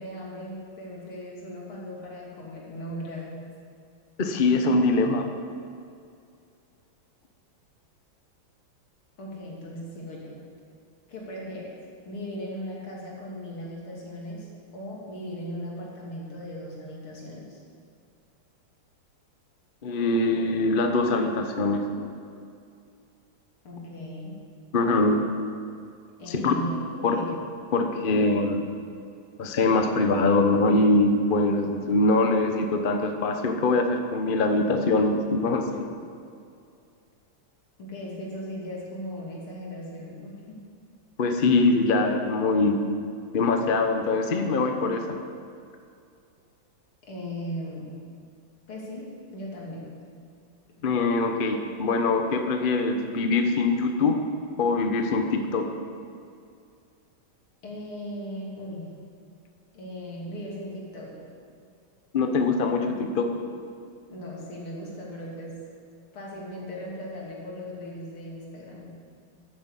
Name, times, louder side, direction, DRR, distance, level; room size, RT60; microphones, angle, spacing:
voice 1, 0.0-3.3 9.2-10.3 11.1-11.8 12.1-14.5 14.7-17.6 23.6-24.3 26.2-26.8 27.1-27.3 37.8-40.6 47.0-47.9 48.7-50.0 57.6-58.9 59.7-61.2 64.1-65.6 66.1-68.9, equal, 85° left, -4 dB, 3.8 m, -38 dB
voice 2, 4.2-5.2 19.8-22.1 24.7-25.2 26.3-26.5 27.0-27.2 27.7-28.6 29.4-35.9 41.2-42.8 43.3-45.0 50.8-54.1 54.6-55.7 62.1-63.3, left 3 dB, 35° left, 5 dB, 0.8 m, -23 dB
11.5 x 9.5 x 8.2 m, 2.4 s
omnidirectional pair, 2.3 m